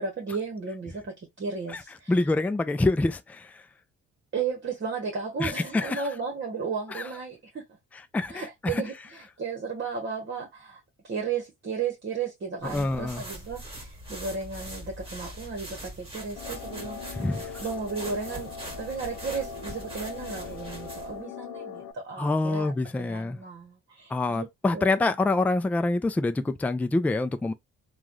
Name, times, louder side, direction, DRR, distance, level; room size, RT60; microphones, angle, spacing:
voice 1, 0.0-2.1 4.3-7.6 8.3-8.9 9.4-17.2 17.6-22.7 23.0-24.5 24.7-25.1, right 5 dB, 40° right, 1.1 m, -34 dB
voice 2, 2.1-3.7 5.4-6.1 6.9-7.1 7.9-8.8 12.6-13.2 17.1-17.6 22.2-23.4 24.1-27.5, left 2 dB, 5° left, 0.3 m, -26 dB
sound 1, 12.6-21.2, right 1 dB, 20° right, 1.7 m, -42 dB
sound 2, 16.4-21.9, left 6 dB, 90° left, 0.5 m, -40 dB
3.1 x 2.3 x 2.5 m
cardioid pair, 90°, 30 cm